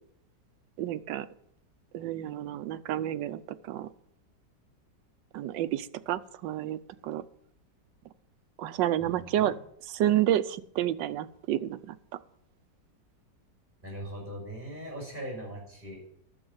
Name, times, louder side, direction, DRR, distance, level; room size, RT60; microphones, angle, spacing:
voice 1, 0.8-1.3 1.9-3.4 3.7-3.9 5.3-7.2 8.6-9.5 9.9-11.9, right 12 dB, 90° right, 13 dB, 1.3 m, -30 dB
voice 2, 9.0-9.5 13.8-16.2, right 1 dB, 25° right, -3 dB, 5.8 m, -40 dB
12.0 x 7.0 x 8.0 m, 0.71 s
omnidirectional pair, 1.9 m